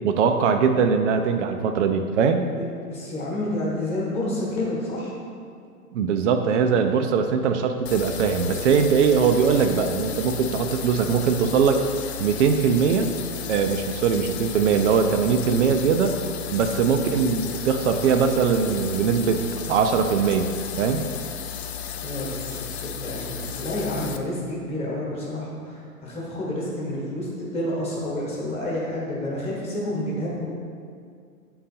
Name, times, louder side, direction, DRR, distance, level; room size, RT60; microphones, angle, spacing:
voice 1, 0.0-2.5 5.9-11.8 12.2-13.1 13.5-16.2 16.5-20.5 20.8-21.1, right 6 dB, 55° right, 6 dB, 0.5 m, -21 dB
voice 2, 2.9-5.1 22.0-30.4, left 1 dB, 15° left, -5 dB, 1.2 m, -29 dB
sound 1, 7.9-24.2, left 9 dB, 45° left, 0.5 m, -34 dB
7.8 x 3.9 x 4.2 m, 2.2 s
hypercardioid pair, 140°, 45 cm